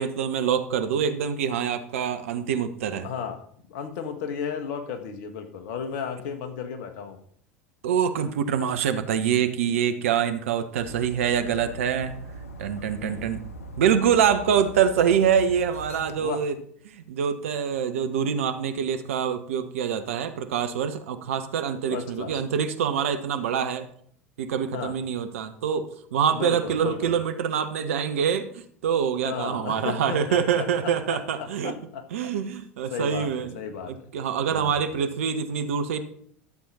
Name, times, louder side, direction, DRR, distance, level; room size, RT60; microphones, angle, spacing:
voice 1, 0.0-3.1 7.8-12.1 12.6-13.4 13.8-16.5 16.9-23.9 24.4-31.7 32.1-33.5 34.1-36.0, right 8 dB, 70° right, 9 dB, 1.1 m, -25 dB
voice 2, 3.0-7.2 13.0-13.3 16.2-16.4 21.9-22.4 24.7-24.9 26.3-27.2 29.2-32.3 32.9-33.9 34.5-34.8, left 7 dB, 60° left, 6 dB, 1.6 m, -34 dB
Dog, 10.8-16.1, right 2 dB, 80° left, 1.1 m, -41 dB
13.0 x 7.6 x 4.3 m, 0.63 s
figure-of-eight pair, 75°, 7 cm